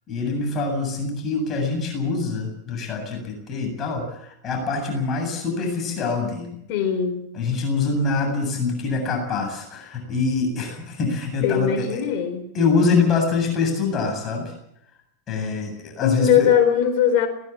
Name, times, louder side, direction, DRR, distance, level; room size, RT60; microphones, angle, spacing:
voice 1, 0.1-6.6 7.3-12.0 12.5-14.5 15.3-16.5, left 4 dB, 30° left, 3 dB, 7.8 m, -24 dB
voice 2, 6.7-7.3 11.4-12.5 16.0-17.3, left 9 dB, 45° left, 7 dB, 4.6 m, -20 dB
21.5 x 19.0 x 7.4 m, 0.75 s
figure-of-eight pair, 90°, 0 cm